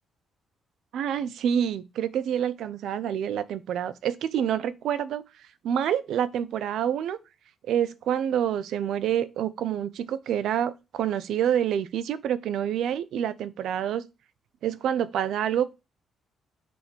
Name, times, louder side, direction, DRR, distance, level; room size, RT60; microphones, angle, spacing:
voice 1, 0.9-5.2 5.6-7.2 7.7-14.0 14.6-15.7, right 9 dB, 75° right, 0.5 m, -27 dB
6.8 x 3.5 x 4.4 m
cardioid pair, 90°, 0 cm